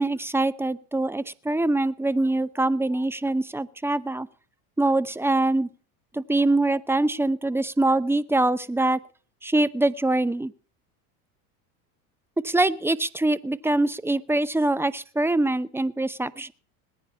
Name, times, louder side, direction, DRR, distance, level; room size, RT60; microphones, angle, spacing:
voice 1, 0.0-4.3 4.8-5.7 6.1-9.0 9.4-10.5 12.4-16.5, right 2 dB, 5° right, 17 dB, 0.8 m, -24 dB
19.5 x 10.0 x 5.5 m, 0.41 s
hypercardioid pair, 90°, 45 cm